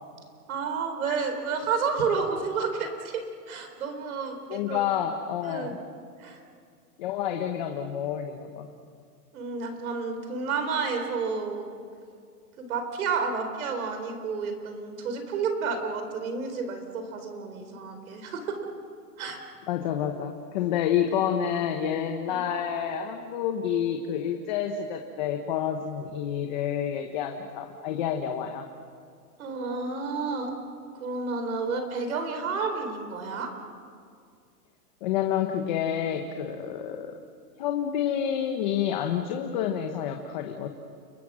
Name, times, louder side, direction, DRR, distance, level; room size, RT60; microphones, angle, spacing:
voice 1, 0.5-3.1 3.5-4.9 5.4-5.8 6.2-6.4 9.3-11.7 12.6-18.6 19.2-19.4 22.3-22.4 29.4-30.5 31.0-33.5, right 5 dB, 60° right, 6 dB, 4.2 m, -30 dB
voice 2, 4.5-5.8 7.0-8.7 19.7-28.6 35.0-37.2 37.6-40.7, left 9 dB, 30° left, 4 dB, 1.1 m, -29 dB
30.0 x 22.0 x 6.3 m, 2.2 s
hypercardioid pair, 170°, 47 cm